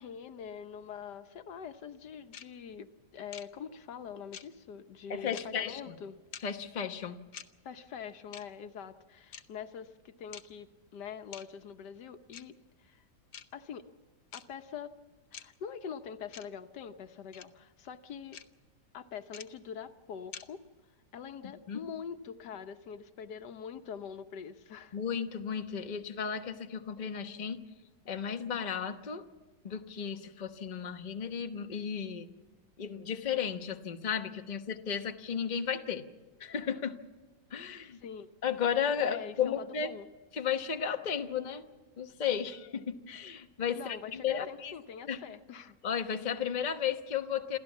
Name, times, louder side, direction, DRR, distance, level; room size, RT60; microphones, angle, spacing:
voice 1, 0.0-6.2 7.6-13.0 13.5-13.8 14.3-14.9 15.3-18.4 18.9-20.6 21.1-25.0 38.0-38.3 39.0-40.1 43.8-45.8, left 7 dB, 85° left, 9 dB, 1.6 m, -44 dB
sound 1, 2.3-2.4 3.3-3.4 4.3-4.4 5.3-5.4 6.3-6.4 7.3-7.5 8.3-8.4 9.3-9.4 10.3-10.4 11.3-11.4 12.3-12.4 13.3-13.4 14.3-14.4 15.3-15.4 16.3-16.4 17.3-17.4 18.3-18.4 19.3-19.4 20.3-20.4, left 8 dB, 60° left, 1.1 m, -45 dB
voice 2, 5.1-5.9 6.4-7.2 21.7-21.8 24.9-27.6 28.0-29.3 29.6-32.3 32.8-36.1 36.4-37.0 37.5-38.0 38.4-39.9 40.3-41.6 42.0-44.7 45.1-45.2 45.8-47.6, left 7 dB, 30° left, 7 dB, 1.0 m, -34 dB
27.5 x 14.0 x 7.2 m, 1.3 s
omnidirectional pair, 1.8 m